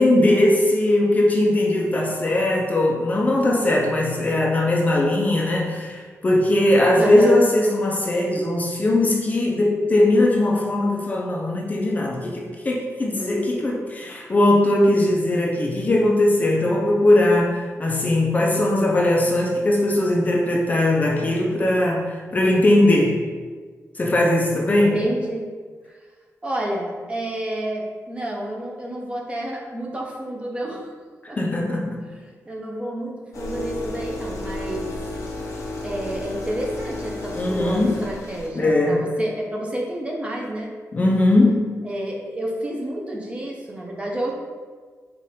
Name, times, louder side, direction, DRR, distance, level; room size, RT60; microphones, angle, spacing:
voice 1, 0.0-23.2 24.0-25.0 31.2-32.0 37.3-38.0 38.5-39.1 40.9-41.8, left 1 dB, 30° left, -1 dB, 0.5 m, -19 dB
voice 2, 7.0-7.4 24.9-25.4 26.4-30.9 31.3-31.4 32.5-34.9 35.8-40.7 41.8-44.3, right 1 dB, 20° right, -2 dB, 0.7 m, -29 dB
sound 1, 33.3-38.5, left 2 dB, 85° left, 0.8 m, -32 dB
4.8 x 2.5 x 4.2 m, 1.5 s
wide cardioid pair, 155°, 5 cm